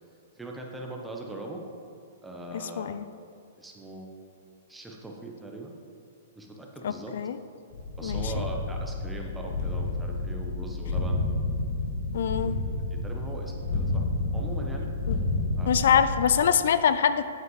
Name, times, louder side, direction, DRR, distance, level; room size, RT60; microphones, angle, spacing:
voice 1, 0.3-1.6 2.2-2.9 3.6-4.1 4.7-5.7 6.4-7.1 8.0-11.2 12.5-12.6 12.9-14.1 14.3-14.9 15.6-15.8, right 2 dB, 5° right, 0 dB, 0.8 m, -40 dB
voice 2, 6.8-7.4 8.0-8.4 12.1-12.5 15.1-15.2 15.7-17.3, left 8 dB, 70° left, 12 dB, 0.4 m, -24 dB
sound 1, 7.7-16.4, left 2 dB, 45° left, 1.5 m, -30 dB
8.0 x 7.7 x 3.1 m, 2.4 s
hypercardioid pair, 145°, 0 cm